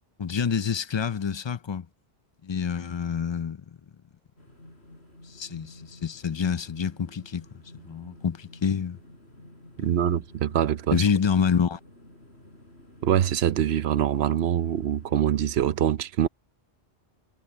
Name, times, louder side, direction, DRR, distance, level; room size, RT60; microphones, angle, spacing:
voice 1, 0.2-1.9 2.4-3.6 5.3-7.5 7.7-9.0 9.8-10.1 10.9-11.8, left 6 dB, 45° left, 0.3 m, -27 dB
sound 1, 4.4-15.5, left 1 dB, 75° left, 6.7 m, -51 dB
voice 2, 9.8-11.0 13.0-16.3, right 10 dB, 70° right, 0.9 m, -24 dB
omnidirectional pair, 1.1 m